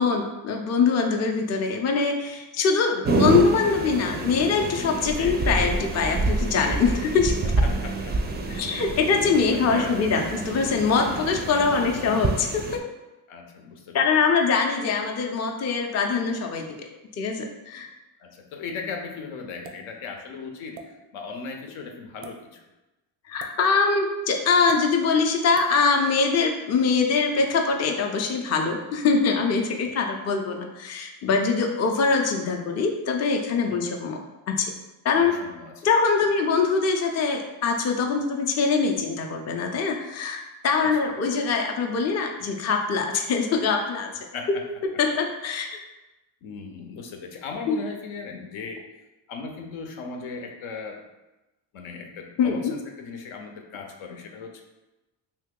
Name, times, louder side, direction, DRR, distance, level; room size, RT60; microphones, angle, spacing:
voice 1, 0.0-7.3 8.5-12.8 13.9-16.7 17.2-17.9 23.3-34.2 34.5-34.7 35.0-35.3 35.8-44.1 45.0-45.7 47.7-47.8 52.4-52.7, left 5 dB, 35° left, 2 dB, 0.5 m, -23 dB
sound 1, 3.1-12.8, right 2 dB, 25° right, 0.4 m, -27 dB
voice 2, 7.6-8.4 9.7-10.0 11.5-11.9 13.3-14.2 18.2-22.6 33.7-33.9 35.2-35.8 40.8-40.9 44.3-44.6 46.4-48.8 49.3-51.0 51.7-54.6, left 4 dB, 75° left, 3 dB, 0.7 m, -37 dB
sound 2, 19.6-19.9 20.7-20.9 22.1-22.3 23.4-23.6 24.7-24.8 25.5-25.7, right 7 dB, 90° right, 0.6 m, -42 dB
2.8 x 2.8 x 3.7 m, 1.0 s
cardioid pair, 85°, 48 cm